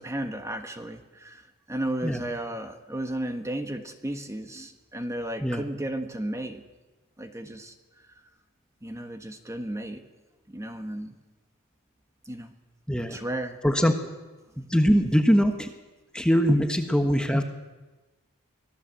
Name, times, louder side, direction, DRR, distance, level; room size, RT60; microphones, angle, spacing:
voice 1, 0.0-6.6 7.2-7.7 8.8-10.0 10.5-11.1 12.2-12.5 13.1-13.6, right 1 dB, 15° right, 7 dB, 1.4 m, -34 dB
voice 2, 12.9-13.2 13.6-13.9 14.6-15.7 16.1-17.4, equal, 5° left, 5 dB, 1.3 m, -22 dB
24.0 x 17.0 x 7.6 m, 1.2 s
head